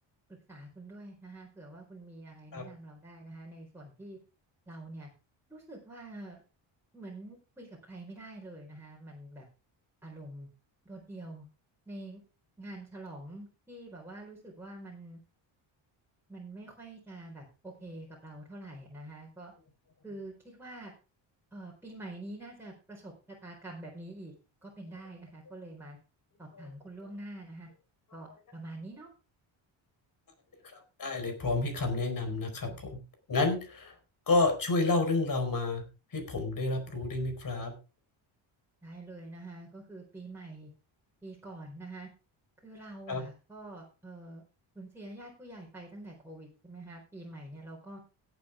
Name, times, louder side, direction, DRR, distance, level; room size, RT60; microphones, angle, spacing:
voice 1, 0.5-4.2 4.7-5.1 5.5-6.4 6.9-9.4 10.0-10.5 10.8-11.5 11.9-12.2 12.6-15.2 16.3-19.5 20.0-20.9 21.5-24.3 24.6-26.0 26.4-27.7 28.1-29.1 38.8-40.7 41.2-42.1 42.6-44.4 44.7-48.0, right 2 dB, 5° right, -4 dB, 4.5 m, -46 dB
voice 2, 31.0-33.0 33.3-33.9 34.3-35.8 36.1-37.7 43.1-43.2, left 3 dB, 40° left, 5 dB, 4.6 m, -30 dB
17.0 x 7.9 x 3.6 m, 0.31 s
cardioid pair, 110°, 49 cm